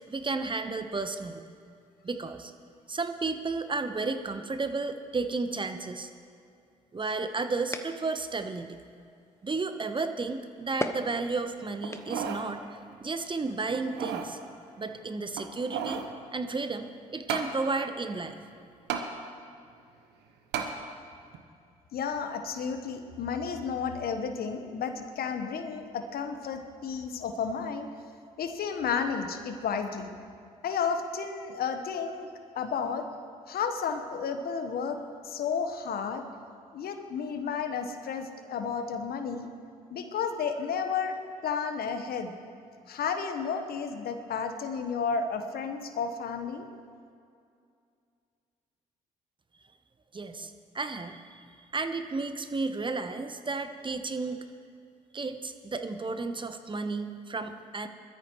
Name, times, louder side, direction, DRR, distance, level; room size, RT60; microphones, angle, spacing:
voice 1, 0.1-1.4 2.0-2.5 2.9-6.1 6.9-8.8 9.4-14.4 14.8-16.0 16.3-18.4 50.1-51.4 51.7-54.4 55.1-57.9, right 3 dB, 25° right, 8 dB, 1.0 m, -33 dB
sound 1, 6.9-12.4, left 2 dB, 15° left, 1.1 m, -42 dB
sound 2, 11.8-12.5 12.9-13.0 13.7-14.3 15.3-16.1 17.3-17.5 18.9-19.1 20.5-20.7 21.3-21.4, right 7 dB, 70° right, 1.1 m, -33 dB
voice 2, 21.9-27.9 28.4-30.1 30.6-32.3 32.5-33.1 33.5-35.0 35.2-36.2 36.7-39.5 39.9-41.2 41.4-42.3 42.9-46.7, left 6 dB, 60° left, 7 dB, 1.2 m, -32 dB
21.0 x 13.0 x 3.1 m, 2.4 s
hypercardioid pair, 45°, 18 cm